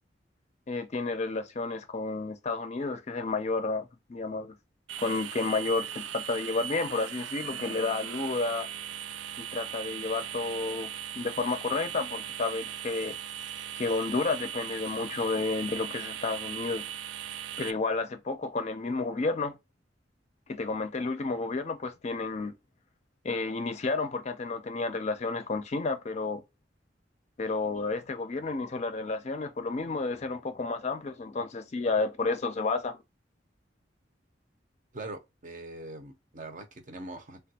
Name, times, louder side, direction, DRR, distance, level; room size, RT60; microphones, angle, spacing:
voice 1, 0.7-4.5 5.0-8.7 9.4-10.9 11.2-13.2 13.8-16.9 17.6-19.5 20.5-22.5 23.2-26.4 27.4-33.0, left 3 dB, 40° left, 0.4 m, -31 dB
sound 1, 4.9-17.7, right 10 dB, 90° right, 0.3 m, -39 dB
voice 2, 34.9-37.4, right 2 dB, 45° right, 0.7 m, -42 dB
3.3 x 2.3 x 2.7 m
head